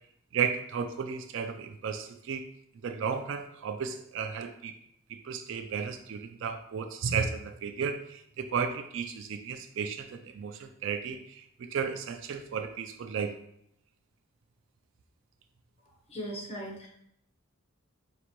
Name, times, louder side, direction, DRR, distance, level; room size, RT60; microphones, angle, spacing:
voice 1, 0.3-2.4 2.8-4.7 5.1-13.3, right 6 dB, 55° right, 7 dB, 0.3 m, -34 dB
voice 2, 16.1-16.9, equal, 25° left, -3 dB, 1.0 m, -38 dB
5.1 x 2.6 x 3.0 m, 0.74 s
head